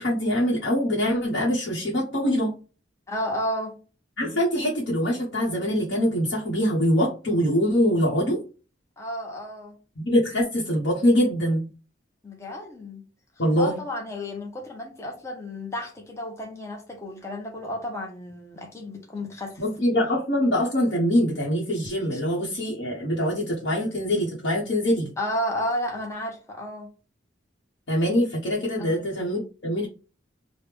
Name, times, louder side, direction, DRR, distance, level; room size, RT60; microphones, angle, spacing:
voice 1, 0.0-2.5 4.2-8.4 10.0-11.7 13.4-13.8 19.6-25.1 27.9-29.9, equal, 65° left, 0.9 m, -24 dB
voice 2, 3.1-3.8 9.0-9.8 12.2-13.1 13.6-19.6 22.1-22.2 25.2-26.9 28.8-29.1, left 1 dB, 15° left, 0.6 m, -32 dB
3.4 x 2.1 x 3.2 m
head